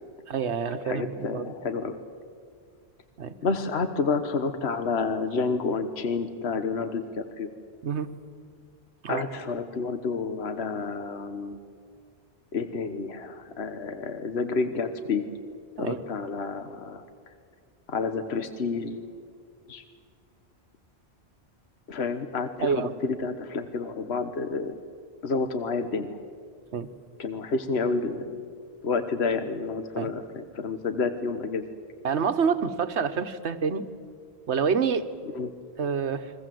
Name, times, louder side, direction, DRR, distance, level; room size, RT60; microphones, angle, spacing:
voice 1, 0.3-1.5 3.2-3.3 7.8-8.1 9.0-9.2 15.8-16.0 22.6-22.9 26.7-26.9 30.0-30.1 32.0-33.9 34.5-35.0 35.8-36.3, right 6 dB, 90° right, 10 dB, 1.4 m, -27 dB
voice 2, 0.8-2.0 3.4-7.5 9.1-11.6 12.5-15.3 15.8-17.0 17.9-19.0 19.7-19.8 21.9-24.7 25.2-26.2 27.2-28.4 28.8-31.6 35.3-35.5, left 4 dB, 70° left, 9 dB, 1.5 m, -29 dB
29.5 x 23.0 x 7.8 m, 2.1 s
omnidirectional pair, 1.1 m